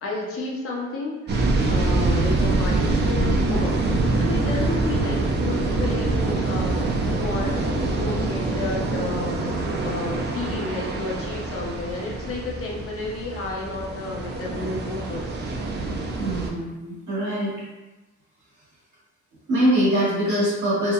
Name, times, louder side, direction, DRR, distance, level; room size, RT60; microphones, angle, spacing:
voice 1, 0.0-1.3 1.7-3.8 4.2-5.2 5.4-9.3 9.8-15.4, left 3 dB, 50° left, -2 dB, 0.6 m, -31 dB
sound 1, 1.3-16.5, right 2 dB, 35° right, 0.4 m, -25 dB
voice 2, 16.2-17.5 19.5-20.9, equal, 75° right, -7 dB, 1.3 m, -23 dB
2.8 x 2.1 x 2.3 m, 1.1 s
cardioid pair, 90°, 30 cm